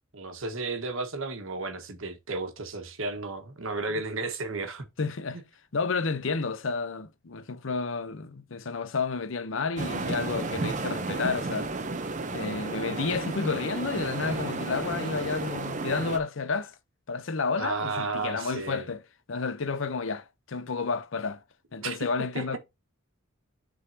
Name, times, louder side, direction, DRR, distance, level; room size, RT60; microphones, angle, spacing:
voice 1, 0.1-4.9 17.6-18.8 21.8-22.0 22.3-22.6, right 3 dB, 75° right, 1.4 m, -33 dB
voice 2, 5.0-5.4 5.7-11.7 12.3-16.8 17.1-19.0 19.3-21.4 21.7-22.6, left 4 dB, 70° left, 0.7 m, -31 dB
sound 1, 9.8-16.2, right 3 dB, 35° right, 0.7 m, -33 dB
11.0 x 3.9 x 2.7 m
head